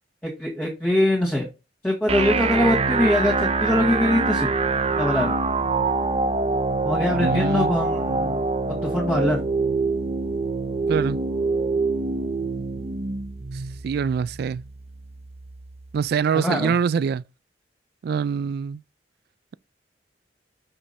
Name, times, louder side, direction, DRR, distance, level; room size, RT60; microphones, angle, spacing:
voice 1, 0.2-1.5 1.8-4.5 5.0-5.4 6.8-9.4 16.3-16.7, left 1 dB, 10° left, 1.6 m, -23 dB
sound 1, 2.1-16.1, right 3 dB, 35° right, 0.7 m, -25 dB
voice 2, 7.1-7.7 8.1-8.3 10.9-11.2 13.8-14.6 15.9-17.2 18.0-18.8, right 6 dB, 60° right, 0.3 m, -24 dB
5.7 x 5.2 x 4.2 m
head